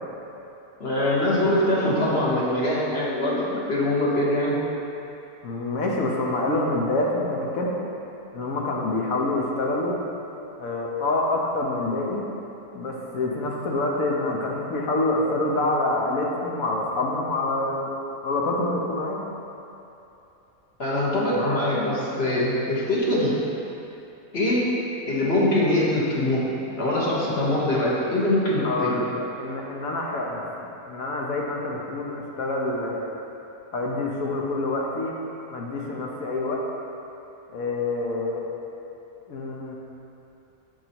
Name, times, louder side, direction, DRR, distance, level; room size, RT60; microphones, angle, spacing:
voice 1, 0.8-4.6 20.8-23.4 24.3-24.7 25.1-29.0, left 1 dB, 45° left, -7 dB, 1.5 m, -23 dB
voice 2, 5.4-7.7 8.3-9.9 10.6-12.2 12.7-17.9 18.2-19.2 21.3-21.6 28.6-29.1 29.4-33.0 33.7-35.2 35.5-36.6 37.5-38.5 39.3-39.8, left 2 dB, 65° left, -2 dB, 1.3 m, -26 dB
7.9 x 7.3 x 3.0 m, 2.9 s
omnidirectional pair, 1.6 m